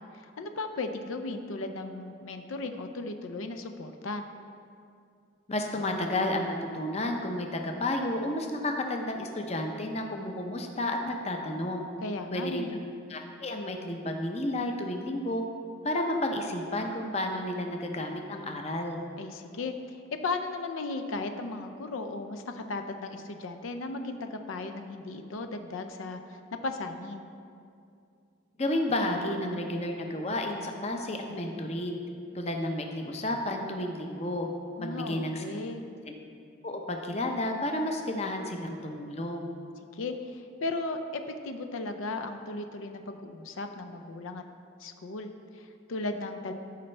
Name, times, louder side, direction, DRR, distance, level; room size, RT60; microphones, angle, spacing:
voice 1, 0.1-4.3 12.0-12.8 19.2-27.3 34.8-35.9 39.9-44.4 44.8-46.5, left 3 dB, 90° left, 7 dB, 0.5 m, -36 dB
voice 2, 5.5-11.8 12.3-12.7 13.1-15.4 15.8-19.0 28.6-32.0 32.3-34.5 34.8-35.4 36.1-36.2 36.6-39.5, left 1 dB, 30° left, 3 dB, 0.6 m, -31 dB
13.0 x 5.4 x 3.3 m, 2.5 s
head